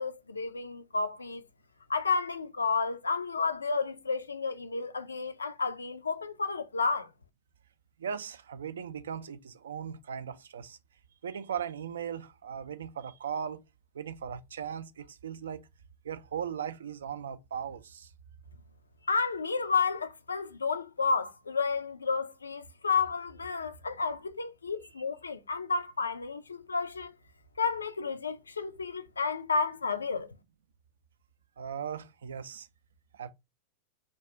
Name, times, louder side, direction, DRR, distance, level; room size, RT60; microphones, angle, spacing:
voice 1, 0.0-1.4 1.9-7.1 19.1-27.1 27.6-30.4, left 4 dB, 75° left, 0.3 m, -31 dB
voice 2, 8.0-10.8 11.2-13.6 13.9-15.6 16.0-18.1 31.6-32.7 33.1-33.3, right 8 dB, 65° right, 0.3 m, -38 dB
2.3 x 2.2 x 3.8 m
figure-of-eight pair, 90°, 0 cm